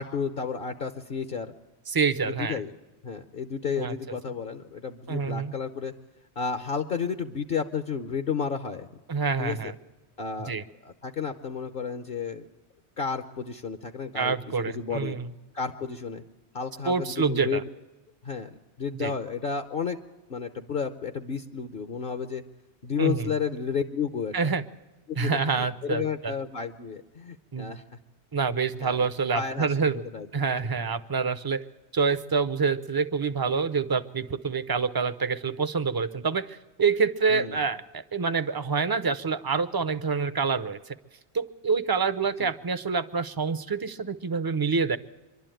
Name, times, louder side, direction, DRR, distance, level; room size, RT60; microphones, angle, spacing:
voice 1, 0.0-1.5 2.2-2.7 3.0-5.9 6.4-8.9 9.4-9.7 10.2-10.5 10.8-12.5 13.0-15.2 15.5-16.2 16.5-17.6 18.2-18.5 18.8-20.0 20.3-22.4 22.8-24.5 25.1-27.8 28.8-29.1 29.3-30.3 37.3-37.6 42.4-42.5, left 6 dB, 55° left, 8 dB, 1.0 m, -32 dB
voice 2, 1.9-2.6 3.8-3.9 5.1-5.5 9.1-9.7 10.5-10.6 14.1-15.3 16.8-17.6 19.0-19.1 23.0-23.3 24.3-24.6 25.2-26.3 27.5-27.7 28.3-30.0 30.3-31.6 31.9-41.0 41.3-45.0, right 5 dB, 25° right, 13 dB, 0.5 m, -27 dB
24.5 x 12.0 x 9.0 m, 1.1 s
omnidirectional pair, 1.1 m